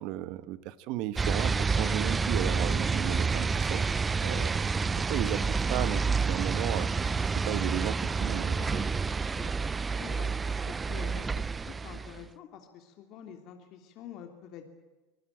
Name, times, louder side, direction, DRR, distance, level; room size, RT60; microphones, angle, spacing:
voice 1, 0.0-3.9 4.2-4.6 4.9-6.9 7.3-8.9, right 14 dB, 60° right, 15 dB, 1.4 m, -35 dB
sound 1, 1.2-12.3, right 4 dB, 20° right, 0.7 m, -29 dB
voice 2, 8.6-8.9 9.3-9.5 10.0-10.3 10.7-14.7, left 9 dB, 55° left, 5 dB, 3.0 m, -47 dB
25.0 x 18.5 x 9.0 m, 1.2 s
hypercardioid pair, 95°, 0 cm